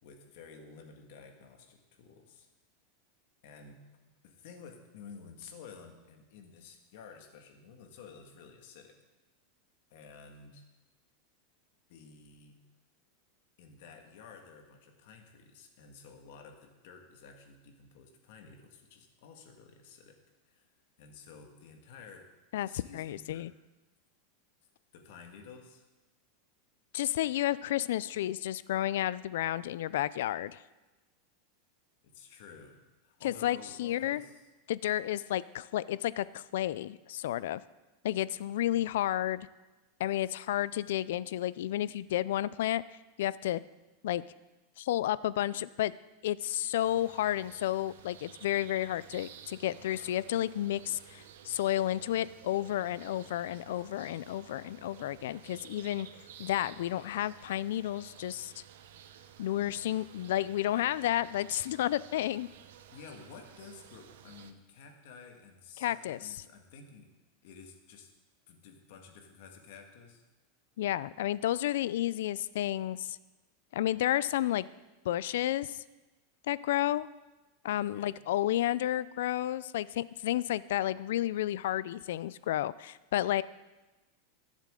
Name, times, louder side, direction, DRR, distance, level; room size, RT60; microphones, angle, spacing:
voice 1, 0.0-2.5 3.4-3.8 4.2-9.0 9.9-10.6 11.9-12.6 13.6-20.2 20.4-20.6 21.0-22.3 22.7-23.5 24.9-25.9 32.0-34.4 59.5-59.7 62.9-67.1 67.4-68.1 68.5-70.2 77.9-78.2, left 5 dB, 60° left, 4 dB, 1.7 m, -52 dB
voice 2, 22.5-23.5 26.9-30.6 33.2-34.2 34.7-37.6 38.0-39.5 40.0-42.8 43.2-43.6 44.0-44.2 44.8-45.9 46.2-56.1 56.4-58.6 59.4-62.5 65.8-66.2 70.8-73.2 73.7-74.7 75.0-75.8 76.5-77.1 77.6-83.4, left 13 dB, 75° left, 18 dB, 0.3 m, -31 dB
sound 1, 46.8-64.5, right 9 dB, 80° right, 0.9 m, -53 dB
21.0 x 7.3 x 3.8 m, 1.1 s
supercardioid pair, 170°, 0 cm